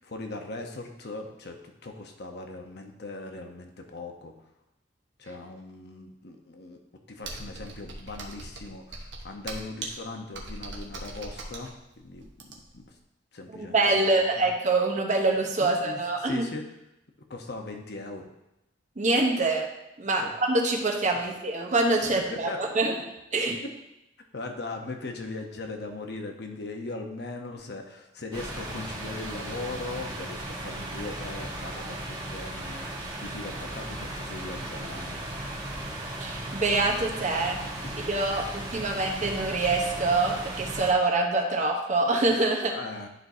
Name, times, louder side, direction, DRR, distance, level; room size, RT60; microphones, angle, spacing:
voice 1, 0.0-4.3 5.2-6.8 7.1-12.8 13.3-14.4 15.6-16.6 17.3-18.3 20.2-20.3 22.0-22.8 24.3-35.5 37.5-38.5 38.9-39.0 42.3-42.4 42.7-43.1, left 2 dB, 65° left, 4 dB, 0.9 m, -39 dB
Computer keyboard, 7.2-12.8, right 2 dB, 80° right, 1.1 m, -40 dB
voice 2, 13.6-16.5 19.0-19.7 20.0-22.9 23.3-23.6 36.2-37.6 38.1-42.7, right 2 dB, 45° right, 1 dB, 1.0 m, -25 dB
sound 1, 28.3-40.9, right 1 dB, 25° right, 1.3 m, -36 dB
11.0 x 4.6 x 2.7 m, 0.89 s
head